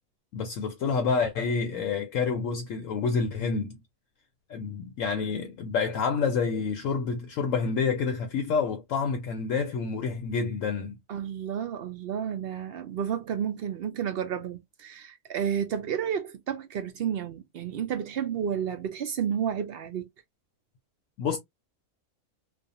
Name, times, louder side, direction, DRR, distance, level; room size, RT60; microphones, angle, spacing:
voice 1, 0.3-3.8 4.5-11.0 21.2-21.4, left 5 dB, 70° left, 0.9 m, -28 dB
voice 2, 11.1-20.1, right 8 dB, 65° right, 0.6 m, -31 dB
2.5 x 2.3 x 2.6 m
omnidirectional pair, 1.5 m